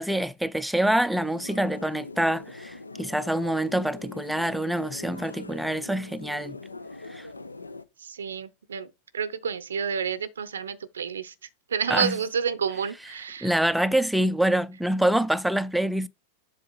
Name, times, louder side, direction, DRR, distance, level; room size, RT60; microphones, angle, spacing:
voice 1, 0.0-6.6 7.1-7.3 11.9-12.2 13.4-16.1, right 1 dB, ahead, 0.5 m, -26 dB
sound 1, 1.2-7.8, left 3 dB, 80° left, 0.6 m, -42 dB
voice 2, 8.0-8.9 9.1-11.3 11.7-13.5, right 7 dB, 70° right, 0.6 m, -29 dB
7.4 x 4.1 x 3.9 m
figure-of-eight pair, 90°, 0 cm